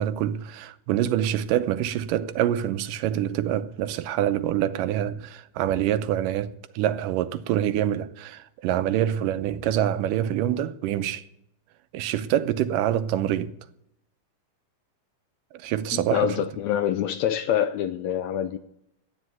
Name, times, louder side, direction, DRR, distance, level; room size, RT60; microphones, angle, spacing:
voice 1, 0.0-11.3 11.9-13.5 15.5-16.3, right 11 dB, 85° right, 2.3 m, -26 dB
voice 2, 15.9-18.6, left 10 dB, 75° left, 1.8 m, -25 dB
13.5 x 9.8 x 9.3 m
omnidirectional pair, 3.7 m